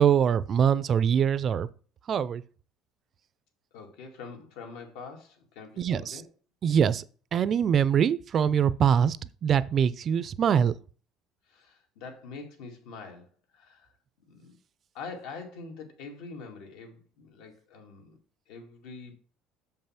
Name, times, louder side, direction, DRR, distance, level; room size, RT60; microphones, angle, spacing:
voice 1, 0.0-1.7 2.1-2.4 5.8-6.2 6.6-7.0 7.3-9.2 9.4-10.7, right 8 dB, 35° right, 0.4 m, -23 dB
voice 2, 3.7-6.3 11.5-13.9 14.3-14.5 14.9-18.2 18.5-19.1, left 4 dB, 85° left, 2.2 m, -44 dB
7.0 x 5.5 x 5.9 m
cardioid pair, 155°, 0 cm